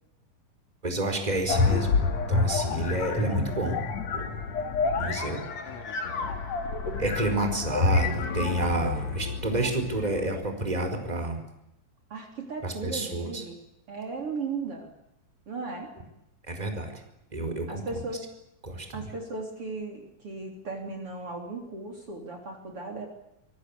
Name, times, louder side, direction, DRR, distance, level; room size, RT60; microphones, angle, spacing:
voice 1, 0.8-2.0 2.3-3.8 4.1-4.3 5.0-5.4 7.0-11.4 12.6-13.4 16.5-17.0 17.3-17.8 18.6-19.0, right 2 dB, 10° right, 6 dB, 4.7 m, -29 dB
sound 1, 1.5-10.3, left 4 dB, 55° left, 3.5 m, -28 dB
voice 2, 12.1-13.6 13.9-14.9 15.5-15.9 17.7-18.3 18.9-23.1, right 3 dB, 45° right, 2 dB, 4.3 m, -36 dB
25.5 x 23.5 x 8.6 m, 0.84 s
omnidirectional pair, 3.7 m